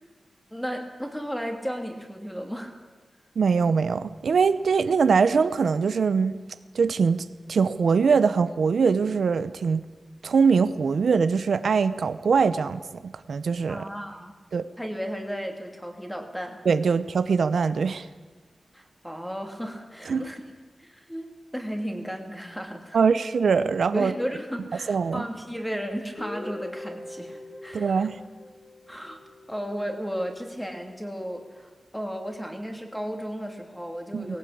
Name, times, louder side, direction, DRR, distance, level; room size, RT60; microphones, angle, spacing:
voice 1, 0.5-2.8 13.7-14.3 14.8-16.6 18.7-20.4 20.8-23.0 23.9-28.1 28.9-29.2 29.5-34.4, equal, 5° left, 4 dB, 2.6 m, -34 dB
voice 2, 3.4-6.4 6.7-9.8 10.2-13.8 14.5-14.6 16.6-18.1 20.1-20.3 22.9-24.1 24.9-25.2 27.7-28.2 34.1-34.4, right 5 dB, 80° right, 12 dB, 0.8 m, -22 dB
Guitar, 26.2-30.0, left 1 dB, 25° left, 2.2 m, -41 dB
19.5 x 17.0 x 8.6 m, 1.4 s
wide cardioid pair, 155°, 0 cm